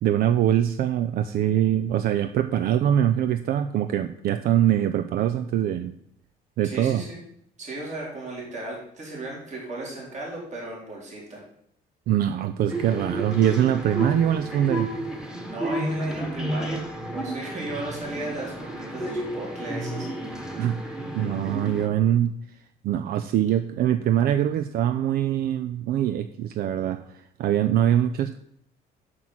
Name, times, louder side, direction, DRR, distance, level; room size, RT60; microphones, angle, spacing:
voice 1, 0.0-5.9 6.6-7.0 12.1-14.9 20.6-20.8 21.1-22.3 22.8-27.0 27.4-28.4, right 11 dB, 65° right, 9 dB, 0.5 m, -23 dB
voice 2, 6.6-7.2 7.6-11.4 15.5-16.9 17.1-20.4, right 2 dB, 45° right, -3 dB, 3.5 m, -36 dB
sound 1, 12.7-21.9, right 1 dB, 5° right, 1.4 m, -31 dB
6.2 x 6.1 x 7.2 m, 0.70 s
cardioid pair, 110°, 17 cm